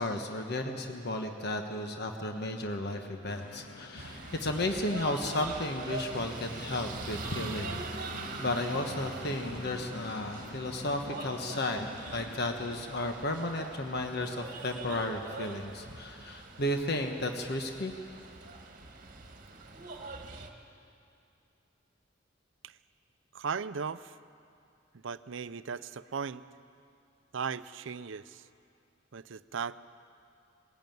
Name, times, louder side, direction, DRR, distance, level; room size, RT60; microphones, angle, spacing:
voice 1, 0.0-7.9 8.4-11.9 12.1-17.9, left 1 dB, 55° left, 4 dB, 1.3 m, -33 dB
sound 1, 3.3-12.9, left 2 dB, 75° left, 1.5 m, -47 dB
sound 2, 4.0-20.5, right 3 dB, 45° right, 1.7 m, -43 dB
voice 2, 23.3-24.1 25.0-26.4 27.3-28.4 29.1-29.8, right 6 dB, 70° right, 14 dB, 0.5 m, -37 dB
21.0 x 16.0 x 9.3 m, 2.6 s
head